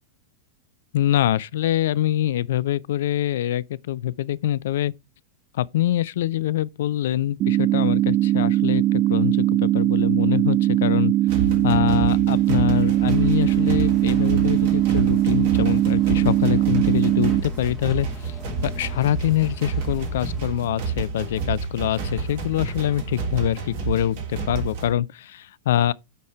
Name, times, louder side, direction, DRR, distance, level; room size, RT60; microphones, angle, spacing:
voice 1, 0.9-4.9 5.5-11.1 11.6-18.4 18.6-25.9, left 12 dB, 60° left, 0.3 m, -24 dB
sound 1, 7.4-17.4, right 14 dB, 40° right, 0.4 m, -20 dB
sound 2, 11.3-24.9, right 4 dB, 55° right, 3.0 m, -30 dB
sound 3, 13.0-20.5, equal, ahead, 2.0 m, -40 dB
8.3 x 4.3 x 4.5 m
figure-of-eight pair, 90°, 0 cm